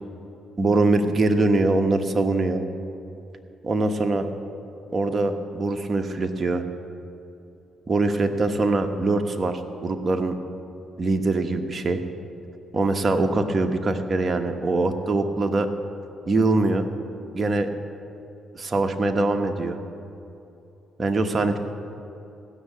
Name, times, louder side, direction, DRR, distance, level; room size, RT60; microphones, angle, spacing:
voice 1, 0.6-2.6 3.6-4.3 4.9-6.6 7.9-10.4 11.0-12.0 12.7-15.7 16.3-16.9 17.3-17.7 18.5-19.8 21.0-21.6, right 2 dB, 35° right, 5 dB, 1.1 m, -23 dB
15.5 x 6.6 x 8.3 m, 2.8 s
cardioid pair, 90°, 0 cm